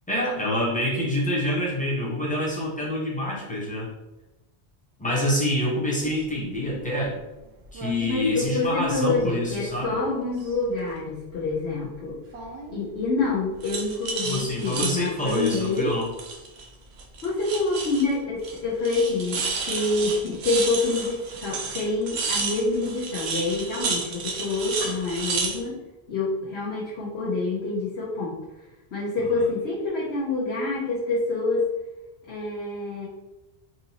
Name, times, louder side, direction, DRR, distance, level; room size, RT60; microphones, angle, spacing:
voice 1, 0.1-3.9 5.0-7.1 7.7-10.0 14.2-16.1 29.3-29.4, left 1 dB, 10° left, -5 dB, 0.8 m, -26 dB
Coins Dropping, 6.0-6.2 7.7-7.9 8.3-9.2 9.7-10.6 12.3-12.8 13.6-16.7 17.0-18.1 18.4-18.6 18.8-25.6, right 4 dB, 75° right, 0.8 m, -32 dB
voice 2, 8.0-12.2 12.7-15.9 17.2-25.8 26.1-28.4 28.9-31.6 32.3-33.1, left 3 dB, 70° left, -6 dB, 1.0 m, -27 dB
3.9 x 2.6 x 2.8 m, 1.0 s
omnidirectional pair, 1.1 m